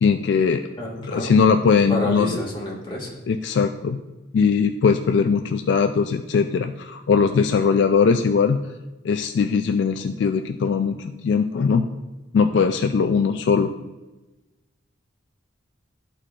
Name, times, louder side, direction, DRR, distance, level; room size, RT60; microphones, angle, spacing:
voice 1, 0.0-0.6 1.0-2.4 3.3-4.0 4.3-8.6 9.0-11.9 12.3-13.7, left 5 dB, 65° left, 7 dB, 0.3 m, -20 dB
voice 2, 0.8-1.3 1.9-3.1, left 1 dB, 25° left, -5 dB, 1.6 m, -28 dB
13.0 x 4.5 x 2.4 m, 1.1 s
head